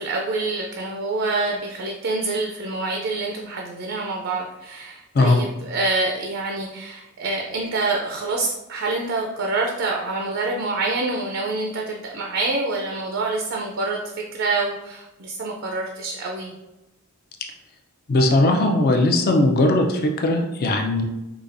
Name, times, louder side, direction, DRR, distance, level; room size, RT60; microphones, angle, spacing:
voice 1, 0.0-16.6, right 3 dB, 55° right, 0 dB, 0.4 m, -26 dB
voice 2, 18.1-21.0, left 2 dB, 45° left, 3 dB, 0.4 m, -19 dB
4.9 x 2.3 x 2.5 m, 1.0 s
head